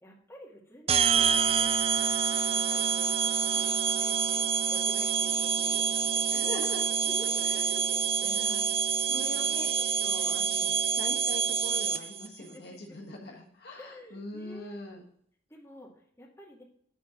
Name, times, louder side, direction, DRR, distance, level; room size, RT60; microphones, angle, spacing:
voice 1, 0.0-6.6 7.0-8.6 9.1-9.5 12.0-12.1 12.4-13.0 13.8-14.8 15.5-16.6, equal, 15° left, -3 dB, 2.1 m, -50 dB
sound 1, 0.9-12.3, right 7 dB, 30° right, 0.4 m, -27 dB
voice 2, 6.3-6.9 8.2-8.6 9.0-15.0, left 1 dB, 60° left, 0 dB, 1.5 m, -42 dB
9.5 x 4.3 x 6.1 m, 0.64 s
head